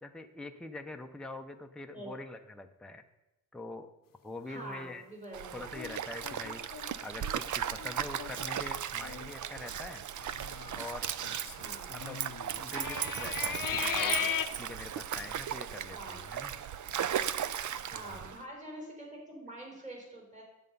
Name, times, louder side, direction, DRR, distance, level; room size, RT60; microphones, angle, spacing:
voice 1, 0.0-3.0 3.5-3.9 4.2-5.1 5.5-6.6 7.0-10.0 10.7-11.1 11.9-12.2 12.6-14.2 14.6-16.6 17.9-18.3, left 2 dB, 5° left, 5 dB, 0.5 m, -44 dB
voice 2, 4.5-5.6 11.5-11.9 14.1-14.3 15.9-16.2 17.8-20.4, right 1 dB, 20° right, -1 dB, 3.6 m, -45 dB
Stream, 5.3-18.4, right 9 dB, 65° right, 0.5 m, -36 dB
sound 1, 5.7-7.4 7.8-7.9 8.2-8.6 9.0-9.3 10.2-14.5, left 9 dB, 80° left, 0.7 m, -37 dB
9.7 x 7.9 x 5.4 m, 0.93 s
wide cardioid pair, 150°, 33 cm